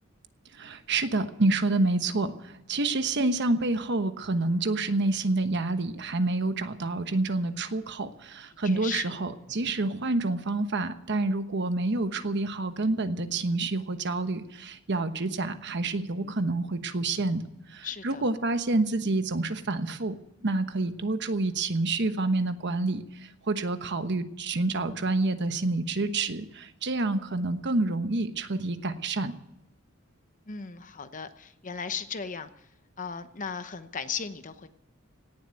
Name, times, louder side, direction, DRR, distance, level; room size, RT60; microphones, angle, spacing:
voice 1, 0.5-17.4 17.7-29.3, right 2 dB, 55° right, 10 dB, 1.1 m, -28 dB
voice 2, 8.6-9.2 17.8-18.2 30.5-32.5 33.0-34.7, left 6 dB, 40° left, 11 dB, 0.9 m, -36 dB
17.5 x 7.6 x 9.4 m, 0.89 s
head